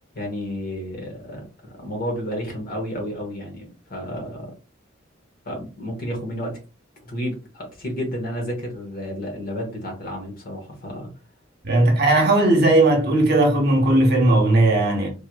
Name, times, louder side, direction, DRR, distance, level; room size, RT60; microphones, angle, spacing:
voice 1, 0.1-4.5 5.4-6.6 7.0-11.1, equal, 50° left, 1.3 m, -31 dB
voice 2, 11.6-15.1, right 2 dB, 55° right, 1.0 m, -17 dB
3.4 x 3.0 x 2.3 m
head